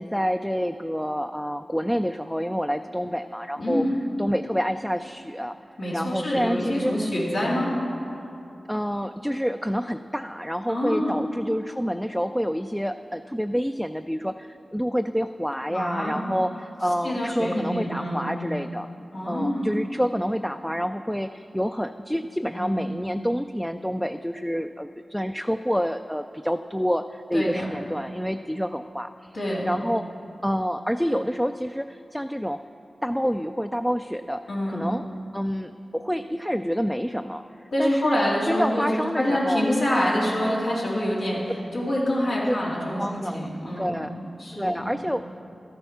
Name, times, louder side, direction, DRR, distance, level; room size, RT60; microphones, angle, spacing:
voice 1, 0.0-3.8 4.2-5.6 5.9-7.0 8.7-18.9 19.3-30.1 30.4-32.6 33.0-35.0 35.3-38.2 38.5-39.7 42.5-42.6 43.0-43.5 43.8-44.1 44.5-45.3, equal, 5° left, 8 dB, 0.3 m, -28 dB
voice 2, 3.6-3.9 5.8-7.7 10.7-11.2 15.7-16.2 17.0-18.3 19.1-19.7 22.6-22.8 27.3-27.6 29.3-29.7 34.5-34.9 37.7-44.1 44.4-44.9, left 1 dB, 85° left, -8 dB, 2.6 m, -26 dB
13.0 x 7.8 x 5.8 m, 2.7 s
cardioid pair, 45°, 0 cm